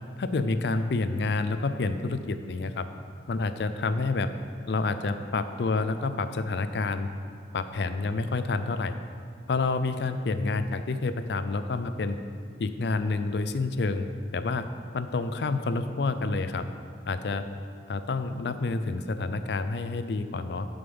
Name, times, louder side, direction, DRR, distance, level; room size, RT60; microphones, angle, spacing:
voice 1, 0.2-2.9 3.3-4.3 4.7-7.1 7.5-9.0 9.5-12.2 12.6-14.1 14.3-14.7 14.9-16.6 17.1-17.4 17.9-20.7, left 3 dB, 70° left, 10 dB, 0.4 m, -28 dB
6.8 x 5.4 x 7.0 m, 2.1 s
head